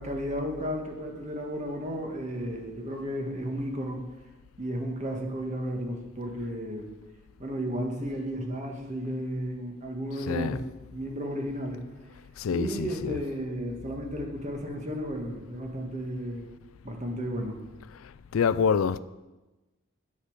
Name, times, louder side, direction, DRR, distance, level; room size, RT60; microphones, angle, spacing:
voice 1, 0.0-4.0 4.6-6.9 7.4-10.6 10.9-11.9 12.5-16.5 16.8-17.6, equal, 35° right, 1.8 m, -33 dB
voice 2, 10.3-10.6 12.4-13.2 18.0-19.0, left 6 dB, 75° left, 0.4 m, -27 dB
10.0 x 8.2 x 6.5 m
head